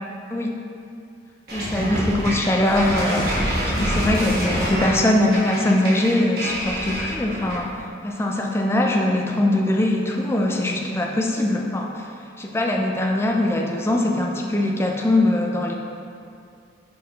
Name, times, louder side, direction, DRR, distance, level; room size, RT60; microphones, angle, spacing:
voice 1, 1.5-3.3 3.6-7.7 8.0-12.1 12.4-15.7, left 1 dB, 15° left, 0 dB, 0.4 m, -22 dB
sound 1, 1.5-7.7, equal, 50° right, 1.4 m, -26 dB
5.7 x 4.6 x 3.6 m, 2.5 s
head